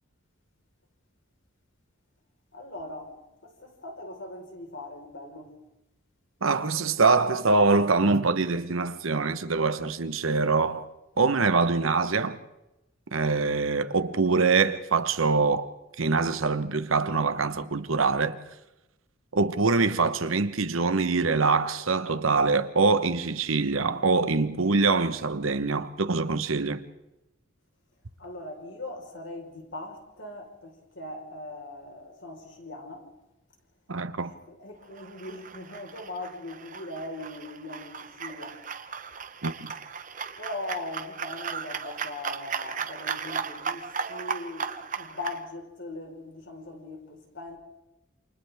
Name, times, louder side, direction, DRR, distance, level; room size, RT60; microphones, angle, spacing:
voice 1, 2.5-3.1 3.4-5.5 28.2-33.1 34.2-38.6 40.4-47.6, left 2 dB, 65° left, 4.6 m, -40 dB
voice 2, 6.4-10.9 11.2-12.4 13.1-15.7 16.0-18.4 19.3-26.9 33.9-34.3 39.4-39.7, right 4 dB, 90° right, 1.2 m, -24 dB
sound 1, 34.9-45.4, right 6 dB, 40° right, 1.0 m, -36 dB
28.5 x 27.5 x 3.6 m
head